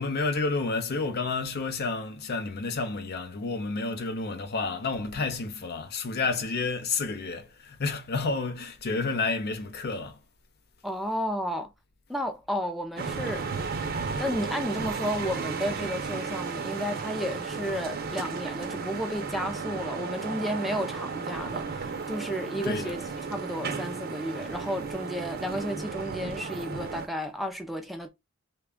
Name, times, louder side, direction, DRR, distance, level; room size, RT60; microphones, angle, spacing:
voice 1, 0.0-10.2 22.0-22.1 22.6-23.0, left 3 dB, 50° left, 0.6 m, -30 dB
voice 2, 10.8-11.7 12.1-13.5 14.2-28.1, equal, ahead, 0.5 m, -32 dB
sound 1, 13.0-27.1, right 5 dB, 50° right, 0.6 m, -34 dB
3.3 x 2.2 x 3.6 m
head